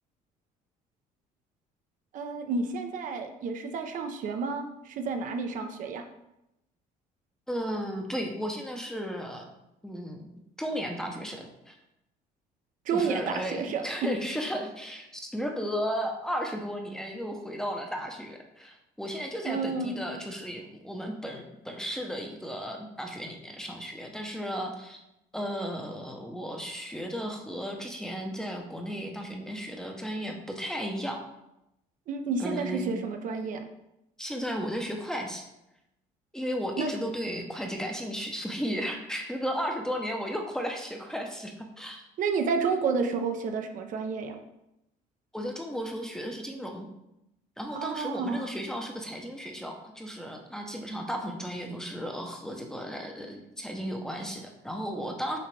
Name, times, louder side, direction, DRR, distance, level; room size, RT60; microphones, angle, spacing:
voice 1, 2.1-6.0 12.9-14.1 19.4-20.0 32.1-33.6 36.8-36.9 42.2-44.4 47.7-48.5, right 4 dB, 60° right, 5 dB, 0.6 m, -30 dB
voice 2, 7.5-9.5 9.8-10.3 10.6-11.8 12.9-25.0 25.3-31.2 32.4-32.9 34.2-35.4 36.3-42.1 45.3-46.9 47.6-55.4, equal, 5° left, 2 dB, 0.7 m, -34 dB
6.7 x 2.4 x 3.2 m, 0.86 s
cardioid pair, 100°, 16 cm